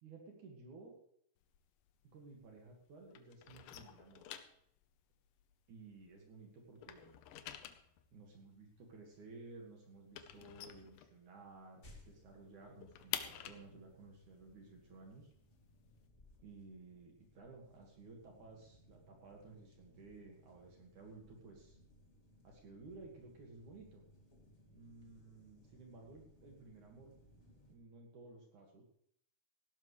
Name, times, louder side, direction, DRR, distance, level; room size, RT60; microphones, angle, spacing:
voice 1, 0.0-1.0 2.1-4.3 5.7-7.2 8.1-15.3 16.4-21.8 22.4-24.0 24.7-27.1 27.7-28.8, right 3 dB, 55° right, 1 dB, 2.9 m, -56 dB
sound 1, 1.4-2.8 3.1-6.3 6.6-11.6 12.0-12.1 12.4-16.1, left 11 dB, 80° left, 2.0 m, -49 dB
sound 2, 11.8-27.7, left 1 dB, 25° left, 1.7 m, -65 dB
17.0 x 12.0 x 3.2 m, 0.69 s
omnidirectional pair, 4.8 m